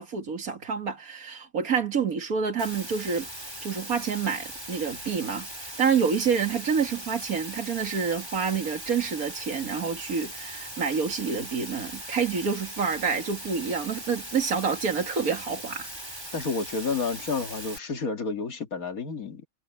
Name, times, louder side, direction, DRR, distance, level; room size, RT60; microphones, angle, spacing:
voice 1, 0.0-3.3 3.6-5.5 5.8-15.9, right 6 dB, 85° right, 2.4 m, -28 dB
Water, 2.6-17.8, right 1 dB, 15° right, 4.7 m, -40 dB
voice 2, 16.3-19.5, left 4 dB, 75° left, 2.4 m, -30 dB
omnidirectional pair, 1.5 m